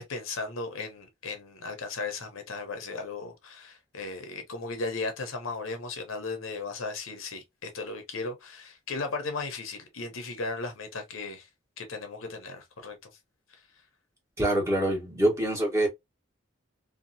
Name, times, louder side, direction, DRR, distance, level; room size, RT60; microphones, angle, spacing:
voice 1, 0.0-11.5 11.8-13.0 13.5-13.6, left 3 dB, 85° left, 0.9 m, -36 dB
voice 2, 14.4-15.9, right 1 dB, 15° right, 1.2 m, -25 dB
2.8 x 2.4 x 2.7 m
head